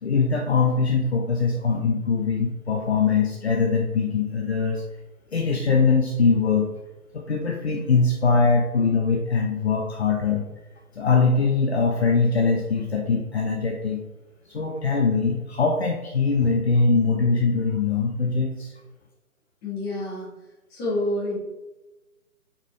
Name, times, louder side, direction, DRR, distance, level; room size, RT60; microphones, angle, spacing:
voice 1, 0.0-4.8 5.3-6.7 7.1-10.4 10.9-14.0 14.5-18.7, left 4 dB, 45° left, 0 dB, 1.0 m, -22 dB
voice 2, 19.6-20.3 20.7-21.4, left 1 dB, 15° left, -6 dB, 2.0 m, -28 dB
8.7 x 5.1 x 3.3 m, 1.1 s
figure-of-eight pair, 150°, 44 cm